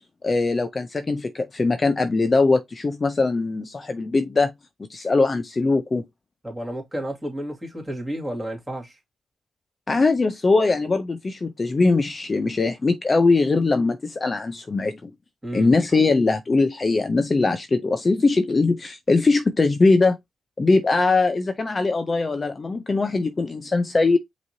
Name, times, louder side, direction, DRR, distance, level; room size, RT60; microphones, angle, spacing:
voice 1, 0.2-4.5 4.9-6.1 9.9-15.1 15.5-20.2 20.6-24.2, left 3 dB, 30° left, 0.6 m, -21 dB
voice 2, 6.4-9.0 15.4-15.7, right 1 dB, 10° right, 2.2 m, -31 dB
5.5 x 3.1 x 2.7 m
cardioid pair, 95°, 0 cm